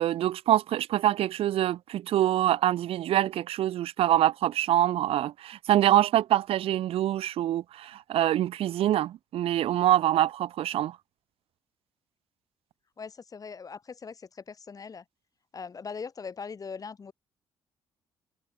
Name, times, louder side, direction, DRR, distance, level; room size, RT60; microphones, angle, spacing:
voice 1, 0.0-11.0, right 12 dB, 80° right, 2.5 m, -25 dB
voice 2, 13.0-15.0 15.5-17.1, left 5 dB, 40° left, 6.1 m, -40 dB
cardioid pair, 95°, 10 cm